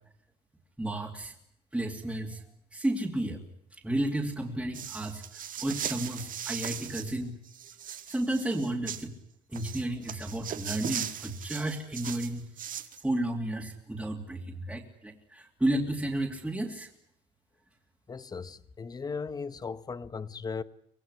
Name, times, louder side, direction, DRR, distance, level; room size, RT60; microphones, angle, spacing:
voice 1, 0.8-1.3 1.7-2.4 2.7-3.4 3.7-7.3 8.1-9.1 9.5-12.4 13.0-16.9, right 1 dB, 5° right, 2.8 m, -32 dB
sound 1, 4.7-7.1 7.4-9.1 9.5-13.0, right 9 dB, 50° right, 1.8 m, -38 dB
voice 2, 18.1-20.6, left 5 dB, 20° left, 1.0 m, -37 dB
25.0 x 19.5 x 9.8 m
cardioid pair, 150°, 18 cm